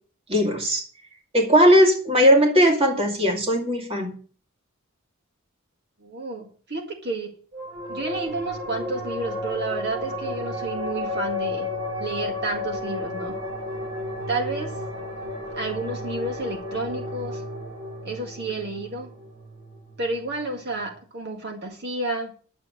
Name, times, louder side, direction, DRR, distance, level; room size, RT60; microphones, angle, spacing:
voice 1, 0.3-0.8 1.3-4.2, equal, 30° right, 3 dB, 2.4 m, -18 dB
voice 2, 6.0-7.3 7.9-11.7 12.0-13.4 14.3-14.7 15.5-17.4 18.0-19.1 20.0-22.3, right 2 dB, 55° right, 3 dB, 1.9 m, -31 dB
sound 1, 7.5-20.4, left 1 dB, 75° right, 6.1 m, -33 dB
11.0 x 7.0 x 7.8 m, 0.42 s
head